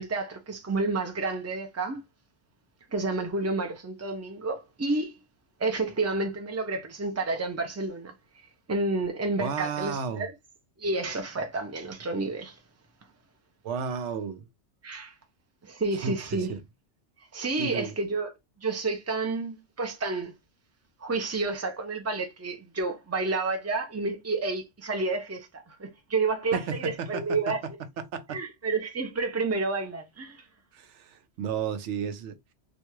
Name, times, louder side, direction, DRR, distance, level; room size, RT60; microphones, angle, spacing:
voice 1, 0.0-2.0 2.9-5.2 5.6-8.1 8.7-10.3 10.8-12.6 14.8-15.1 15.6-16.5 17.3-18.3 18.6-20.3 21.0-27.6 28.3-30.4, right 3 dB, 15° right, 0.6 m, -30 dB
voice 2, 9.4-10.3 13.6-14.5 15.9-16.6 17.6-17.9 26.5-28.4 30.7-32.4, right 6 dB, 80° right, 0.9 m, -33 dB
3.4 x 2.5 x 2.9 m
omnidirectional pair, 1.2 m